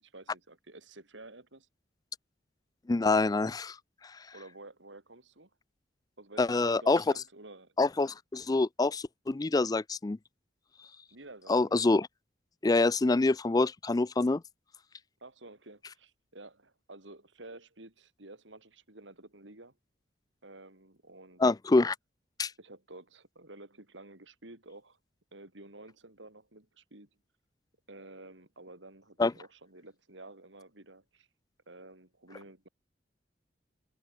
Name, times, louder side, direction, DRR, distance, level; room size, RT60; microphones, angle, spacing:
voice 1, 0.0-1.7 4.3-5.5 6.2-7.7 11.1-11.8 15.2-19.8 20.4-21.5 22.6-25.0 25.3-27.1 27.9-31.3 31.7-32.7, right 2 dB, 75° right, 4.3 m, -51 dB
voice 2, 2.9-3.8 4.1-4.2 6.4-7.0 7.8-10.2 11.5-12.1 12.6-14.4 21.4-22.0 22.4-22.5 29.2-29.3, left 3 dB, 20° left, 0.4 m, -26 dB
head